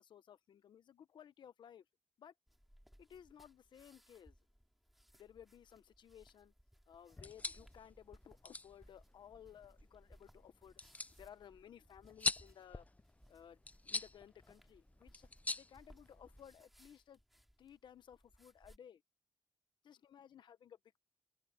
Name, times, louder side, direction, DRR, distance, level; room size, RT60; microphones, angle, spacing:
voice 1, 0.0-1.8 2.2-2.3 3.0-4.4 5.1-6.5 6.9-10.8 11.2-12.9 13.3-17.2 17.6-19.0 19.8-21.0, left 9 dB, 85° left, 1.1 m, -58 dB
sound 1, 2.5-18.8, equal, ahead, 2.6 m, -66 dB
sound 2, 7.1-16.6, left 3 dB, 20° left, 0.5 m, -45 dB
open air
cardioid pair, 90°, 8 cm